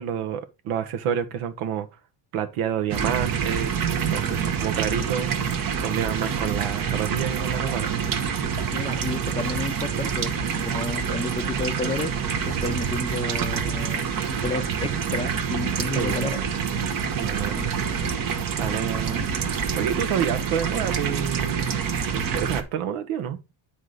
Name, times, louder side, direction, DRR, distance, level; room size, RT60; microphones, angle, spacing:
voice 1, 0.0-1.9 2.3-3.8 4.1-5.3 5.8-7.9 16.0-16.2 17.1-18.0 18.6-19.2 19.8-21.8 22.1-23.4, right 9 dB, 85° right, 1.3 m, -28 dB
sound 1, 2.9-22.6, right 7 dB, 45° right, 1.0 m, -27 dB
voice 2, 8.7-12.1 12.4-16.4, left 3 dB, 15° left, 0.4 m, -31 dB
8.5 x 4.9 x 3.9 m
cardioid pair, 145°, 49 cm